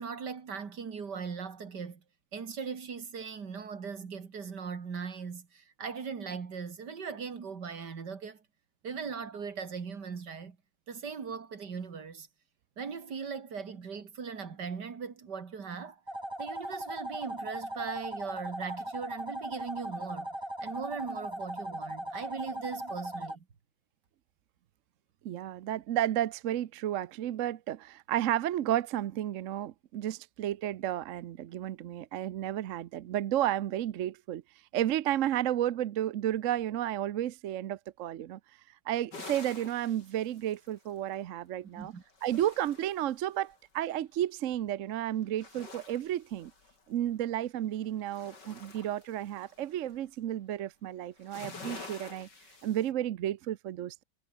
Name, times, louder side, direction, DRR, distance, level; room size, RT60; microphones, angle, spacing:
voice 1, 0.0-2.0 2.3-8.4 8.8-10.6 10.9-12.3 12.8-16.0 16.4-20.3 20.6-23.4 41.7-42.0, right 6 dB, 75° right, 2.8 m, -39 dB
sound 1, 16.1-23.4, right 1 dB, 15° right, 6.0 m, -38 dB
voice 2, 25.2-34.4 34.7-38.4 38.9-41.9 42.2-46.5 46.9-52.3 52.6-54.0, right 12 dB, 60° right, 0.9 m, -32 dB
sound 2, 39.1-41.1 41.9-43.6 45.2-47.1 47.6-50.0 51.1-52.9, left 3 dB, 90° left, 4.7 m, -49 dB
omnidirectional pair, 1.8 m